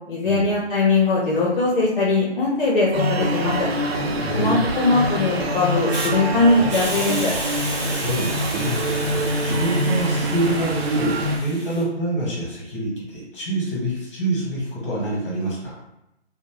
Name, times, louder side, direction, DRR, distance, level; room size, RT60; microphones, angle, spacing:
voice 1, 0.1-3.7 4.4-7.3, left 3 dB, 50° left, -4 dB, 0.6 m, -20 dB
sound 1, 2.9-11.4, right 1 dB, 60° right, 0.6 m, -25 dB
voice 2, 4.1-4.6 7.9-15.8, right 1 dB, 25° left, -5 dB, 1.0 m, -26 dB
Hiss, 5.9-6.1 6.7-11.8, right 1 dB, 25° right, 0.8 m, -33 dB
2.6 x 2.1 x 3.1 m, 0.88 s
hypercardioid pair, 160°, 35 cm